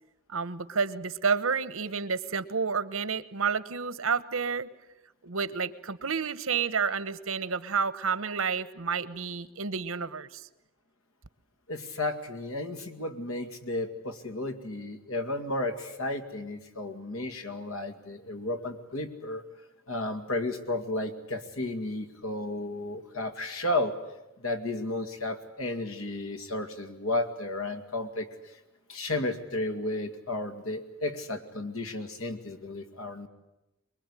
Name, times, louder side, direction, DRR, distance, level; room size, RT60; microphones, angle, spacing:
voice 1, 0.3-4.7 5.2-10.5, right 5 dB, 85° right, 16 dB, 1.1 m, -30 dB
voice 2, 11.7-19.4 19.9-23.9 24.4-28.5 28.9-33.3, left 2 dB, 90° left, 7 dB, 2.3 m, -33 dB
23.5 x 22.0 x 9.9 m, 0.96 s
head